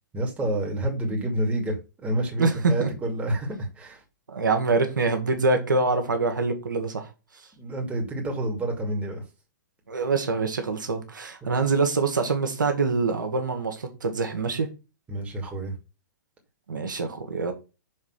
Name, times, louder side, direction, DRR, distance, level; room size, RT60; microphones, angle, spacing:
voice 1, 0.1-4.0 7.6-9.2 11.4-11.5 15.1-15.7, right 1 dB, 15° right, 2.5 m, -29 dB
voice 2, 2.4-2.9 4.3-7.1 9.9-14.7 16.7-17.5, right 3 dB, 90° right, 1.6 m, -25 dB
6.3 x 3.6 x 6.0 m
hypercardioid pair, 130°, 10 cm